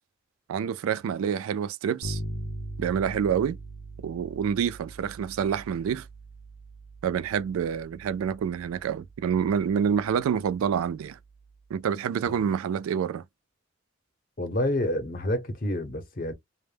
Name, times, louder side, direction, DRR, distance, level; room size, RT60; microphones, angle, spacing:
voice 1, 0.5-2.2 2.8-3.6 4.0-6.1 7.0-11.2 11.7-13.2, right 7 dB, 90° right, 0.3 m, -27 dB
Bass guitar, 2.0-11.7, right 1 dB, 85° left, 0.4 m, -42 dB
voice 2, 14.4-16.3, left 1 dB, 40° left, 0.6 m, -28 dB
2.1 x 2.0 x 3.1 m
head